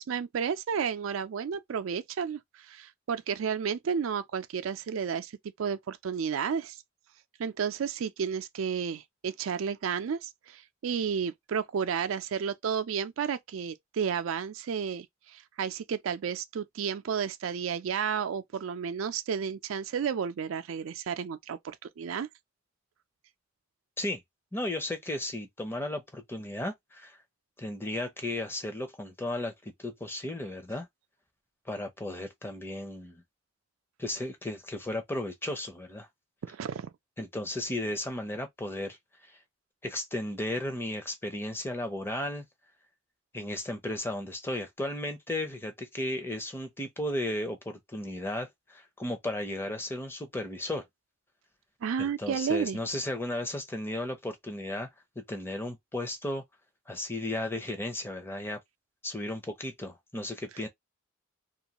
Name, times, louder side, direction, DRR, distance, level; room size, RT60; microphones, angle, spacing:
voice 1, 0.0-5.3 5.6-6.8 7.4-22.3 36.4-36.9 51.8-52.8, right 7 dB, 90° right, 0.4 m, -32 dB
voice 2, 24.5-27.2 27.6-30.9 31.7-33.2 34.0-36.1 37.2-39.0 39.2-39.3 39.8-42.4 43.3-50.9 52.0-54.9 55.2-56.4 56.9-58.6 59.0-60.7, left 1 dB, 10° left, 0.6 m, -34 dB
2.5 x 2.3 x 2.9 m
head